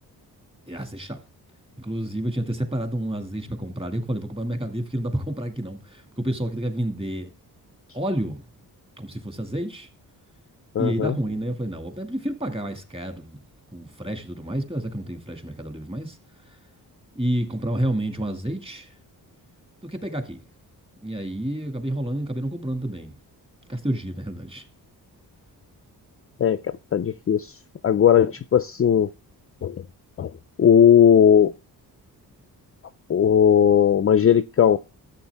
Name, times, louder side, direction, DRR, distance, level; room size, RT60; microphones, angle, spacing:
voice 1, 0.7-1.2 1.8-7.3 7.9-8.4 9.0-9.9 10.8-13.4 13.7-16.2 16.5-16.6 17.2-18.9 19.8-20.4 21.0-23.1 23.7-24.6, right 1 dB, 15° right, 2.1 m, -29 dB
voice 2, 10.7-11.2 26.4-27.5 27.8-29.1 29.6-29.8 30.2-30.3 30.6-31.5 33.1-34.8, left 8 dB, 35° left, 0.5 m, -17 dB
13.0 x 7.8 x 3.5 m
cardioid pair, 120°, 38 cm